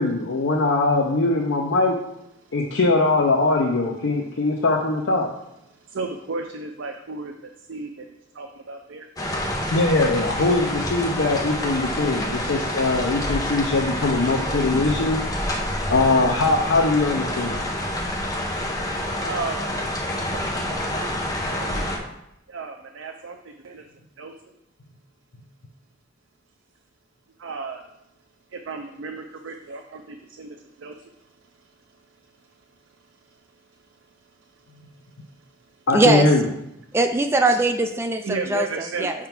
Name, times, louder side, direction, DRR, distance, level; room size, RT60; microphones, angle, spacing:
voice 1, 0.0-2.0 2.5-5.3 9.7-15.2 15.9-17.6 35.9-36.5, left 2 dB, 70° left, 0 dB, 0.6 m, -21 dB
voice 2, 5.7-9.1 14.9-15.0 19.2-19.7 20.2-21.1 21.6-22.1 22.5-23.8 24.2-24.3 27.4-27.9 28.5-35.9 37.5-37.6 38.2-39.1, right 4 dB, 75° right, 4 dB, 0.5 m, -36 dB
sound 1, 9.2-22.0, left 1 dB, 20° left, 0.7 m, -27 dB
voice 3, 35.9-36.3 36.9-38.7 39.0-39.1, right 2 dB, 15° right, 6 dB, 0.3 m, -20 dB
5.7 x 3.6 x 5.8 m, 0.83 s
head